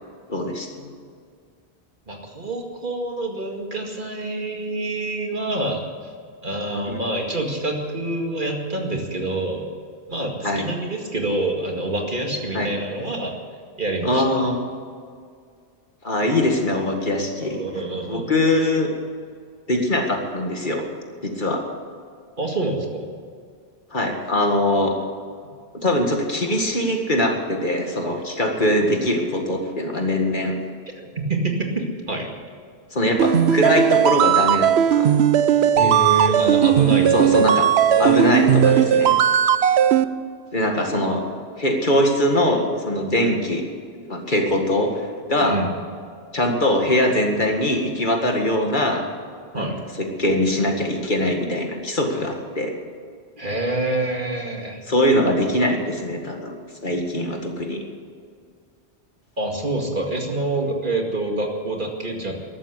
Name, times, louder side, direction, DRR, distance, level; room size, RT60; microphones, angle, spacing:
voice 1, 0.3-0.9 6.9-7.0 10.4-10.6 12.5-12.7 14.0-14.6 16.0-17.6 18.1-18.9 19.7-20.8 21.2-21.6 23.9-24.9 25.7-30.5 32.9-35.1 37.1-37.7 38.0-39.1 40.5-41.2 41.6-43.6 44.1-44.9 45.3-45.6 46.3-49.1 49.5-52.7 54.9-56.5 56.8-57.8, left 1 dB, 50° left, 2 dB, 2.2 m, -22 dB
voice 2, 2.1-5.8 6.4-9.6 10.1-13.3 13.8-14.2 17.3-18.3 22.4-23.1 31.2-32.3 35.8-37.5 37.9-38.1 38.4-39.1 45.4-45.7 49.5-49.8 53.4-54.8 59.4-62.3, right 2 dB, 50° right, 1 dB, 2.3 m, -26 dB
sound 1, 33.2-40.0, right 9 dB, 80° right, 1.0 m, -17 dB
14.0 x 12.0 x 8.4 m, 2.1 s
omnidirectional pair, 1.1 m